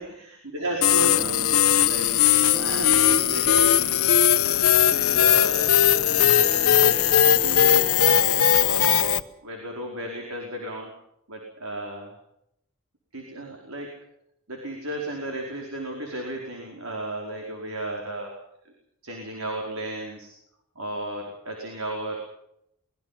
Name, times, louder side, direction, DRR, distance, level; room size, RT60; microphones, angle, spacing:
voice 1, 0.0-1.6 1.9-2.1 2.5-3.9 4.9-5.7 6.0-9.1 9.4-10.9 11.3-12.1 13.1-13.9 14.5-18.4 18.6-18.7 19.0-20.3 20.7-22.2, right 1 dB, 70° right, 1 dB, 5.0 m, -34 dB
sound 1, 0.8-9.2, left 10 dB, 70° left, 1.1 m, -19 dB
25.0 x 22.0 x 5.9 m, 0.76 s
head